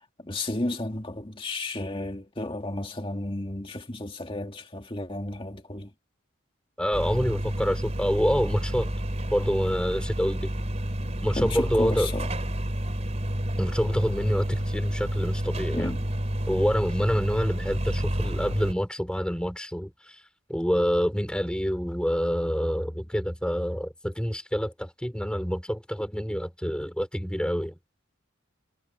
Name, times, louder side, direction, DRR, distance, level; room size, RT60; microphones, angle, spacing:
voice 1, 0.2-5.9 11.4-12.3 15.7-16.0, left 2 dB, 25° left, 2.1 m, -32 dB
voice 2, 6.8-8.9 9.3-10.5 11.2-12.1 13.6-16.0 16.5-20.2 20.5-27.8, equal, 5° left, 4.9 m, -27 dB
sound 1, 6.9-18.7, equal, 30° right, 3.8 m, -30 dB
head